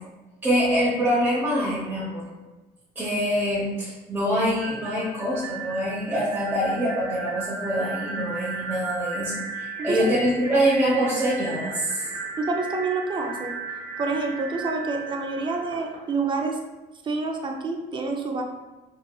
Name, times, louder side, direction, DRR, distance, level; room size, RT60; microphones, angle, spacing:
voice 1, 0.4-2.3 2.9-12.1, equal, 10° right, -10 dB, 0.9 m, -25 dB
sound 1, 4.6-16.4, right 4 dB, 45° right, 0.8 m, -35 dB
voice 2, 9.8-10.2 10.4-10.6 12.4-13.6 14.0-16.6 17.0-18.4, right 3 dB, 30° right, 2 dB, 0.4 m, -28 dB
2.8 x 2.7 x 2.3 m, 1.1 s
cardioid pair, 110°, 17 cm